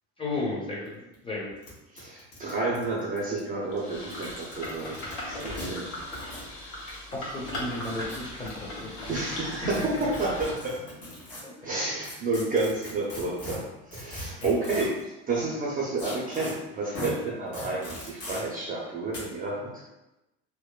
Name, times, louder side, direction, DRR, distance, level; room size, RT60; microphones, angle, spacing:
voice 1, 0.2-1.5 7.0-9.1 9.8-9.9 11.4-12.1, left 2 dB, 15° left, -4 dB, 0.7 m, -35 dB
sound 1, 0.9-1.0 1.1-1.2 1.6-1.7 2.0-3.4 4.0-5.1 5.5-5.7 6.1-6.5 7.6-8.5 9.7-11.4 12.0-15.0 16.0-16.5 16.9-17.1 17.5-18.4 19.1-19.2, left 1 dB, 70° left, 1.4 m, -40 dB
voice 2, 1.9-5.9 9.1-10.8 11.6-19.8, right 2 dB, 25° right, -5 dB, 0.4 m, -30 dB
sound 2, 3.7-10.5, left 1 dB, 85° left, 0.9 m, -38 dB
2.9 x 2.1 x 2.2 m, 0.98 s
supercardioid pair, 95°, 38 cm